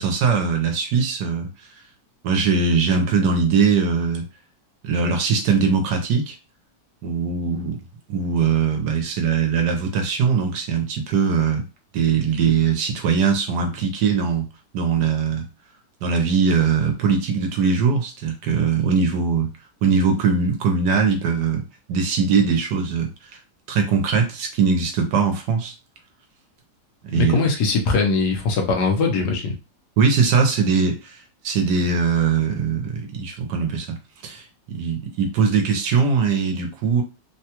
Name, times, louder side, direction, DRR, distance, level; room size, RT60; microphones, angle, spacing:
voice 1, 0.0-1.5 2.2-4.2 4.8-6.3 7.0-7.8 8.1-11.6 11.9-15.5 16.0-19.5 19.8-23.1 23.7-25.7 27.0-27.3 30.0-37.0, right 5 dB, 75° right, 4 dB, 1.3 m, -21 dB
voice 2, 27.1-29.5, left 4 dB, 70° left, 3 dB, 1.3 m, -21 dB
3.5 x 2.2 x 2.9 m, 0.29 s
omnidirectional pair, 1.9 m